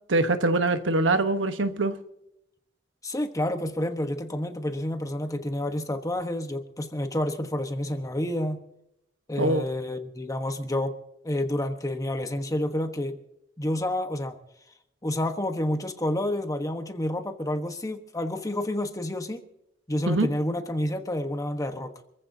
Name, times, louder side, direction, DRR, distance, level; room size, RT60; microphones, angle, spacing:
voice 1, 0.1-1.9 9.4-9.6 20.1-20.3, right 2 dB, 75° right, 9 dB, 1.2 m, -23 dB
voice 2, 3.0-8.6 9.3-10.9 11.2-13.2 13.6-14.4 15.0-19.4 19.9-21.9, left 1 dB, 20° left, 6 dB, 1.2 m, -29 dB
27.0 x 14.5 x 2.8 m, 0.80 s
head